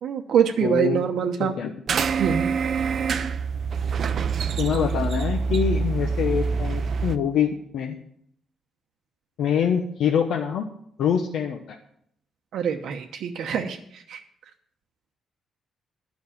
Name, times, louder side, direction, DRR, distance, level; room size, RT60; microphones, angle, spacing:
voice 1, 0.0-1.5 2.2-2.5 12.5-14.2, right 8 dB, 65° right, 4 dB, 0.9 m, -24 dB
voice 2, 0.6-1.0 1.4-1.7 4.6-8.0 9.4-10.7 11.0-11.8, left 8 dB, 70° left, 3 dB, 0.9 m, -25 dB
sound 1, 1.9-7.2, right 5 dB, 45° right, 0.5 m, -25 dB
10.0 x 6.2 x 8.5 m, 0.68 s
cardioid pair, 155°, 0 cm